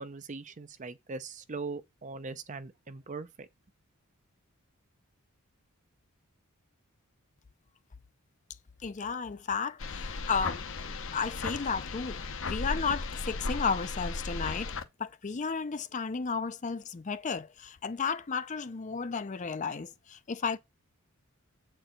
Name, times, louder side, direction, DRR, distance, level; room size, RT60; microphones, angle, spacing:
voice 1, 0.0-3.5, right 4 dB, 35° right, 0.5 m, -40 dB
voice 2, 8.8-14.7 15.0-20.6, left 5 dB, 35° left, 0.5 m, -33 dB
sound 1, 9.8-14.8, left 3 dB, 60° left, 0.8 m, -36 dB
7.8 x 4.5 x 5.1 m
head